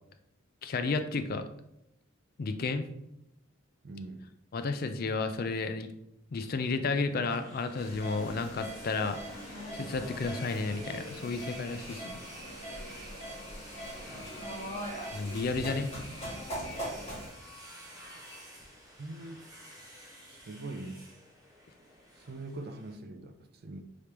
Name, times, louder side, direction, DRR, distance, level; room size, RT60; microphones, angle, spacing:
voice 1, 0.6-1.4 2.4-2.8 4.5-5.9 6.3-9.2 9.7-12.2 15.1-15.9, left 3 dB, 45° left, 0.4 m, -32 dB
voice 2, 3.8-4.3 14.1-14.4 19.0-19.4 20.3-21.0 22.2-23.8, right 2 dB, 50° right, 0.4 m, -43 dB
sound 1, 7.0-23.0, equal, 20° right, 1.0 m, -50 dB
sound 2, 7.8-17.3, equal, 30° left, 1.7 m, -41 dB
5.0 x 3.3 x 2.9 m
head